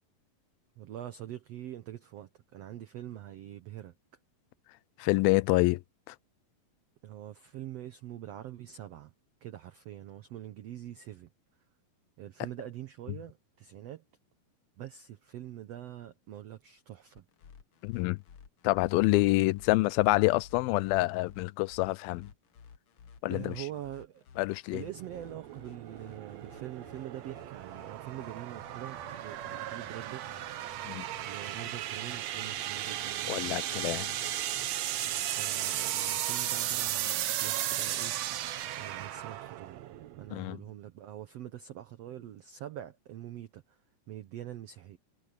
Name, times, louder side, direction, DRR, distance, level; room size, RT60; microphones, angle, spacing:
voice 1, 0.8-3.9 7.0-9.1 9.4-11.3 12.2-14.0 14.8-17.2 23.3-24.2 24.7-30.9 31.2-33.4 35.0-38.4 38.7-39.8 40.2-43.8 44.1-45.0, right 12 dB, 85° right, 1.4 m, -44 dB
voice 2, 5.0-5.8 6.1-6.2 17.8-18.2 18.6-22.3 23.2-23.5 24.4-24.8 30.9-31.1 33.3-34.1 40.3-40.6, left 21 dB, 90° left, 2.4 m, -27 dB
sound 1, 17.1-34.7, left 7 dB, 70° left, 1.2 m, -55 dB
sound 2, 24.9-40.3, right 12 dB, 70° right, 1.7 m, -35 dB
omnidirectional pair, 4.1 m